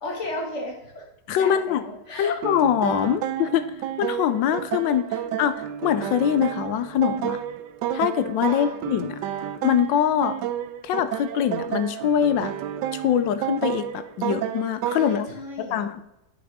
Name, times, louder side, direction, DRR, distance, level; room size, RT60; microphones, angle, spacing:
voice 1, 0.0-1.1 1.4-2.4 4.8-5.4 8.4-8.8 15.0-15.9, left 2 dB, 40° left, 0 dB, 2.1 m, -34 dB
voice 2, 1.3-1.8 2.2-3.6 4.0-5.0 5.4-7.4 7.9-9.1 9.6-10.3 10.8-12.5 12.9-15.3 15.7-16.0, left 9 dB, 80° left, 11 dB, 1.3 m, -23 dB
sound 1, 2.4-15.2, right 11 dB, 75° right, 1.2 m, -30 dB
9.4 x 5.9 x 4.0 m, 0.90 s
omnidirectional pair, 2.0 m